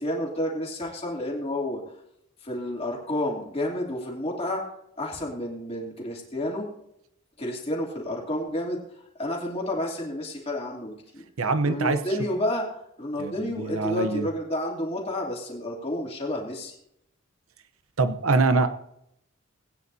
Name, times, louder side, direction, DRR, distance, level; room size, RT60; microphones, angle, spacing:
voice 1, 0.0-1.8 2.4-4.6 5.0-6.7 7.4-8.8 9.2-11.2 11.6-12.7 13.0-16.7, left 1 dB, 30° left, -1 dB, 2.9 m, -30 dB
voice 2, 11.4-12.0 13.2-14.3 18.0-18.7, right 3 dB, 85° right, 11 dB, 0.9 m, -24 dB
19.5 x 9.6 x 2.8 m, 0.77 s
head